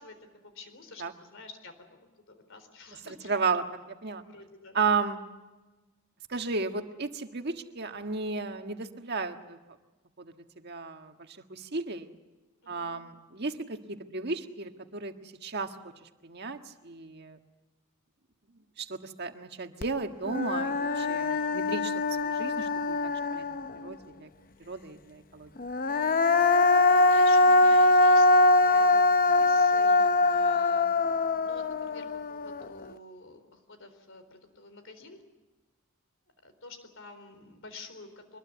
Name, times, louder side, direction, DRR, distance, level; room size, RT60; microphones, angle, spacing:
voice 1, 0.0-3.3 4.2-4.8 12.6-12.9 21.3-21.6 26.9-28.3 28.6-35.2 36.4-38.4, left 3 dB, 55° left, 8 dB, 4.1 m, -49 dB
voice 2, 3.2-3.6 4.0-4.2 4.7-5.2 6.3-9.6 10.6-11.1 11.5-12.1 12.7-15.7 16.2-16.6 16.8-17.4 18.8-21.9 22.2-23.0 23.3-23.4 23.8-24.3 24.7-25.5, right 4 dB, 45° right, 6 dB, 1.6 m, -33 dB
Human voice, 19.8-19.9 20.3-23.9 25.6-32.8, left 2 dB, 40° left, 0.7 m, -23 dB
24.0 x 21.5 x 8.2 m, 1.2 s
head